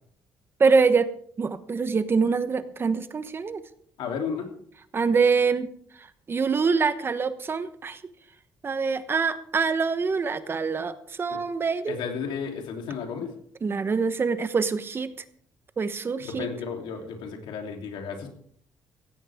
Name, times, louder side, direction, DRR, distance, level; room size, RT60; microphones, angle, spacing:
voice 1, 0.6-1.1 1.4-3.6 4.9-5.7 6.3-8.0 8.6-12.0 13.6-15.1 15.8-16.5, right 5 dB, 30° right, 12 dB, 1.0 m, -24 dB
voice 2, 4.0-4.5 11.3-11.4 11.9-13.3 16.3-18.3, left 6 dB, 90° left, 3 dB, 3.2 m, -33 dB
16.5 x 16.0 x 3.6 m, 0.62 s
cardioid pair, 140°, 8 cm